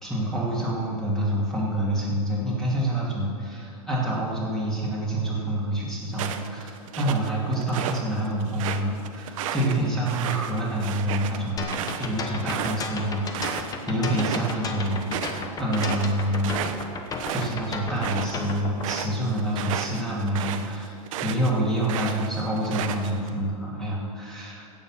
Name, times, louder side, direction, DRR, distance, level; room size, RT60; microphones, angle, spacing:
voice 1, 0.0-11.6 12.0-17.0 17.3-20.9 21.2-24.6, right 1 dB, 5° left, -5 dB, 2.6 m, -27 dB
sound 1, 6.1-8.0 8.4-13.7 14.0-14.5 14.8-21.5 21.8-23.3, right 9 dB, 65° right, 0.9 m, -33 dB
sound 2, 11.6-18.9, left 4 dB, 20° left, 1.0 m, -33 dB
16.0 x 7.1 x 5.8 m, 2.6 s
supercardioid pair, 140°, 18 cm